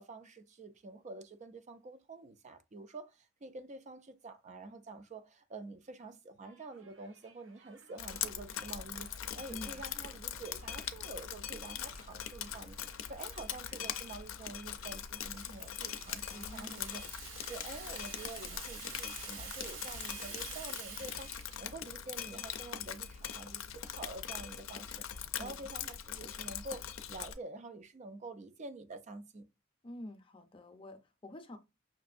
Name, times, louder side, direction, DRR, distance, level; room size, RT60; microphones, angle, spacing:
voice 1, 0.0-17.0 17.4-25.1 25.4-29.5, right 3 dB, 35° right, 0.4 m, -48 dB
sound 1, 6.4-15.0, right 4 dB, 70° right, 0.7 m, -64 dB
Drip, 8.0-27.3, left 9 dB, 90° left, 0.5 m, -42 dB
voice 2, 9.5-9.8 16.3-17.1 25.4-25.7 29.8-31.6, left 1 dB, 25° left, 0.5 m, -48 dB
Rattle (instrument), 14.8-21.7, right 5 dB, 85° right, 1.2 m, -48 dB
5.9 x 2.6 x 2.5 m
head